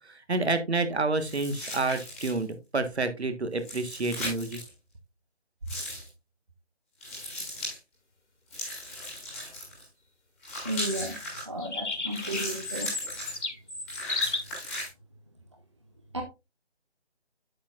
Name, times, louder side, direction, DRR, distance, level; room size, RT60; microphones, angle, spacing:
voice 1, 0.1-4.6, right 3 dB, 70° right, 1.5 m, -29 dB
sound 1, 1.2-2.5 3.6-4.7 5.7-6.1 7.0-7.8 8.5-9.8 10.4-11.4 12.1-13.4 13.9-14.9, left 1 dB, ahead, 1.8 m, -37 dB
voice 2, 10.6-11.1 11.5-12.9 16.1-16.2, right 1 dB, 25° right, 0.7 m, -33 dB
sound 2, 11.6-14.4, left 3 dB, 85° left, 2.3 m, -33 dB
8.5 x 7.8 x 2.5 m
figure-of-eight pair, 170°, 34 cm